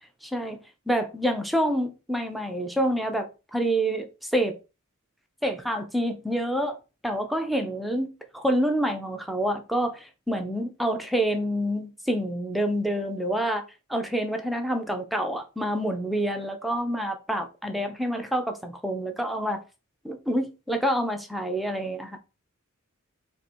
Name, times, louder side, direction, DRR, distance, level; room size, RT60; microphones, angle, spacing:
voice 1, 0.2-0.6 0.9-4.6 5.4-6.8 7.0-8.1 8.3-13.6 13.9-19.6 20.0-22.2, equal, ahead, 0.4 m, -27 dB
2.7 x 2.6 x 4.2 m
head